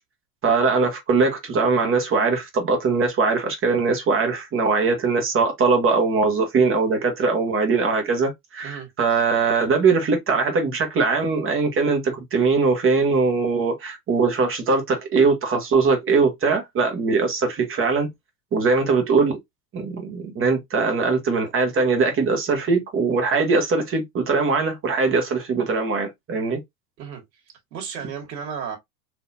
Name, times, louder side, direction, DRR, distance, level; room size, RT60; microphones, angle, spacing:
voice 1, 0.4-18.1 18.5-19.4 19.7-26.6, right 4 dB, 25° right, 1.2 m, -21 dB
voice 2, 27.7-28.8, right 7 dB, 85° right, 1.8 m, -33 dB
3.9 x 2.8 x 2.6 m
supercardioid pair, 125°, 50 cm